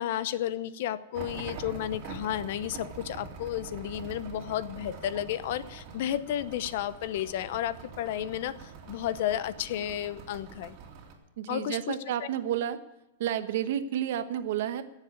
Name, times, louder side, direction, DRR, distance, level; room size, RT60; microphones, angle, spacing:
voice 1, 0.0-8.6 8.9-10.8 11.5-11.9 12.2-12.3, left 11 dB, 55° left, 15 dB, 0.7 m, -32 dB
sound 1, 1.1-11.1, right 5 dB, 35° right, 2.7 m, -44 dB
voice 2, 11.4-12.8 13.2-14.8, right 10 dB, 60° right, 10 dB, 1.1 m, -30 dB
17.0 x 7.4 x 8.8 m, 0.96 s
supercardioid pair, 165°, 0 cm